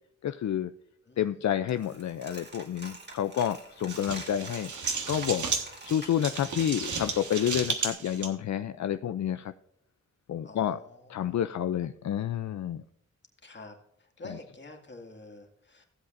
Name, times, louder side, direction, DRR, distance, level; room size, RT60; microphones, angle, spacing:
voice 1, 0.2-0.7 1.2-4.7 5.1-5.5 5.8-9.5 10.3-10.8 11.1-12.8 14.2-14.4, left 10 dB, 70° left, 10 dB, 0.4 m, -29 dB
voice 2, 1.0-1.5 10.4-11.4 13.4-15.8, left 2 dB, 40° left, 2 dB, 2.1 m, -48 dB
Coin (dropping), 1.7-7.9, right 2 dB, 35° right, 1.7 m, -47 dB
sound 1, 3.9-8.3, right 5 dB, 85° right, 1.4 m, -33 dB
16.0 x 7.9 x 2.5 m, 0.79 s
wide cardioid pair, 80°, 29 cm